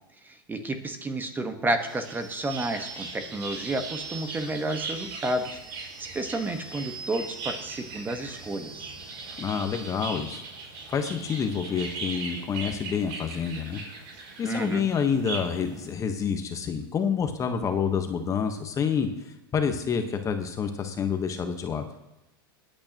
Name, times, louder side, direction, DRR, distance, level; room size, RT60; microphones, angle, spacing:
voice 1, 0.2-8.9 14.4-14.9, right 2 dB, 15° right, 7 dB, 1.3 m, -31 dB
sound 1, 1.8-15.9, right 4 dB, 60° right, 5.2 m, -39 dB
voice 2, 9.4-10.4 10.9-13.8 14.4-19.1 19.5-21.9, left 6 dB, 25° left, 7 dB, 1.2 m, -28 dB
21.5 x 8.7 x 3.0 m, 0.94 s
hypercardioid pair, 110°, 12 cm